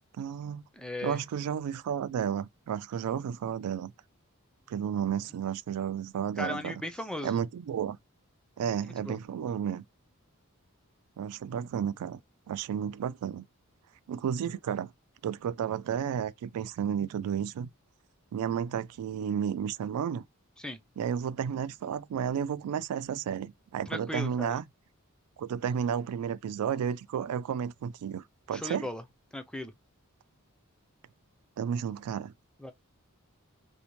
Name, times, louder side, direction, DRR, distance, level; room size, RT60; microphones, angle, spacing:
voice 1, 0.0-0.6 1.0-3.9 4.7-6.8 7.2-8.0 8.6-9.8 11.2-12.2 12.5-13.4 14.1-14.9 15.2-17.7 18.3-20.2 21.0-24.6 25.4-28.9 31.6-32.3, right 8 dB, 85° right, 0.3 m, -32 dB
voice 2, 0.8-1.2 6.4-7.3 8.8-9.2 20.6-20.8 23.9-24.5 28.6-29.0 29.3-29.7 32.6-32.7, left 1 dB, 5° left, 0.3 m, -36 dB
2.6 x 2.1 x 2.9 m
head